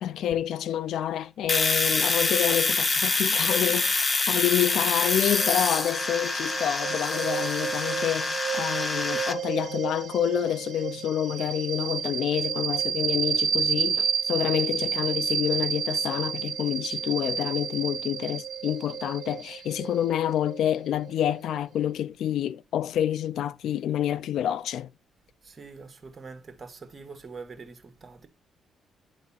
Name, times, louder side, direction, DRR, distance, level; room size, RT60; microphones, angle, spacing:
voice 1, 0.0-24.9, left 11 dB, 75° left, 0.4 m, -28 dB
Domestic sounds home sounds, 1.5-9.3, left 3 dB, 30° left, 0.8 m, -26 dB
voice 2, 1.9-2.2 25.4-28.3, right 4 dB, 35° right, 1.5 m, -44 dB
sound 1, 5.3-21.6, right 8 dB, 55° right, 1.0 m, -31 dB
9.4 x 4.0 x 5.5 m
cardioid pair, 90°, 0 cm